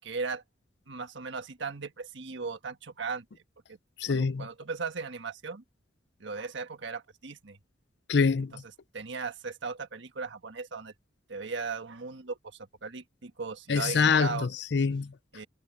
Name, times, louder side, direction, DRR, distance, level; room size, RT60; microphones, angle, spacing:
voice 1, 0.0-0.4 0.9-3.2 3.7-3.8 4.1-5.6 6.2-7.6 8.9-10.9 11.3-14.5 15.3-15.5, right 4 dB, 70° right, 1.5 m, -37 dB
voice 2, 4.0-4.5 8.1-8.6 13.7-15.1, left 5 dB, 60° left, 0.5 m, -25 dB
head